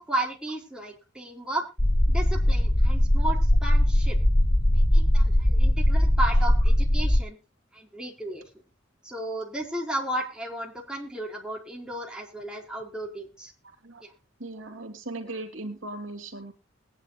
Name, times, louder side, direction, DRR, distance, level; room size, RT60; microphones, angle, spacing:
voice 1, 0.0-1.6 2.1-4.2 4.7-7.4 7.7-8.6 9.0-13.5 14.0-14.1, right 1 dB, 5° right, -2 dB, 4.8 m, -34 dB
sound 1, 1.8-7.2, left 1 dB, 20° left, 1.0 m, -20 dB
voice 2, 14.4-16.5, right 2 dB, 75° right, 6 dB, 3.1 m, -38 dB
21.0 x 10.5 x 2.4 m, 0.27 s
head